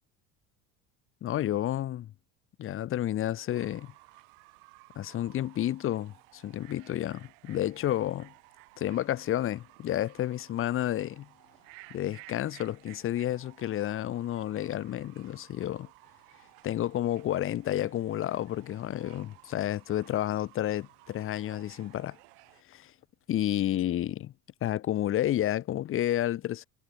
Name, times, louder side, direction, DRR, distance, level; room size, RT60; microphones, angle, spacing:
voice 1, 1.2-2.1 2.6-3.9 4.9-8.3 8.8-11.3 11.9-15.9 16.6-22.2 22.7-22.9 23.3-24.3 24.6-26.7, left 12 dB, 40° left, 1.3 m, -30 dB
Fowl / Bird, 3.5-22.6, right 38 dB, 90° right, 6.3 m, -56 dB
cardioid pair, 140°, 33 cm